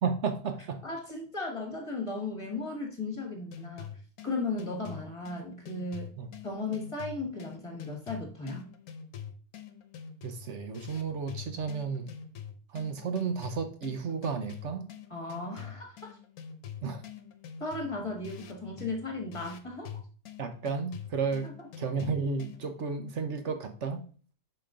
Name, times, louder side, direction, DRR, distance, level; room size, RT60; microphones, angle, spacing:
voice 1, 0.0-0.8 6.2-6.3 10.2-12.1 12.7-14.9 16.8-17.0 20.4-24.0, right 5 dB, 55° right, 1.0 m, -33 dB
voice 2, 0.8-3.9 4.2-6.1 6.4-8.6 15.1-16.1 17.6-19.9 21.4-21.5, left 3 dB, 20° left, 1.5 m, -36 dB
sound 1, 3.5-22.8, left 7 dB, 65° left, 1.2 m, -45 dB
6.9 x 5.2 x 3.7 m
omnidirectional pair, 1.8 m